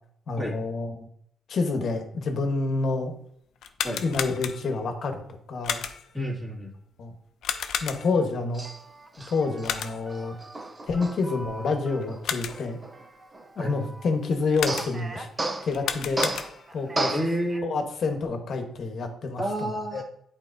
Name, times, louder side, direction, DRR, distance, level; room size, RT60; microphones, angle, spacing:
voice 1, 0.3-1.1 1.5-3.1 4.0-5.2 5.5-5.8 7.0-7.1 7.8-8.6 9.3-10.3 10.8-12.8 13.6-16.3 16.7-17.1 17.6-20.0, left 3 dB, 60° left, 5 dB, 1.1 m, -28 dB
sound 1, 3.6-4.9 5.6-6.2 7.4-8.3 9.6-10.2 12.0-12.8 14.5-15.2 15.7-16.8, left 8 dB, 75° left, 0.5 m, -33 dB
voice 2, 6.1-6.7 13.6-13.7 17.1-17.7 19.4-20.0, equal, 5° right, -4 dB, 2.0 m, -29 dB
Male speech man speaking, 8.5-14.1 14.7-17.6, right 2 dB, 25° right, 0.6 m, -35 dB
8.4 x 4.3 x 2.6 m, 0.68 s
cardioid pair, 90°, 0 cm